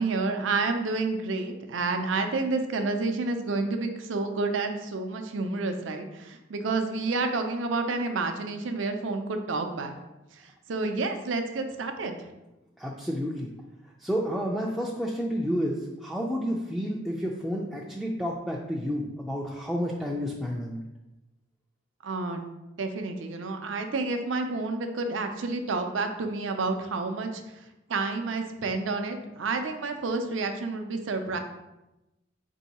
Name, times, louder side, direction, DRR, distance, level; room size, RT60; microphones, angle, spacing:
voice 1, 0.0-9.9 10.3-12.3 22.0-22.4 22.8-27.6 27.9-31.4, right 3 dB, 75° right, 6 dB, 0.5 m, -29 dB
voice 2, 12.8-13.5 13.8-20.8, equal, ahead, -3 dB, 0.3 m, -30 dB
4.4 x 2.7 x 4.1 m, 0.97 s
head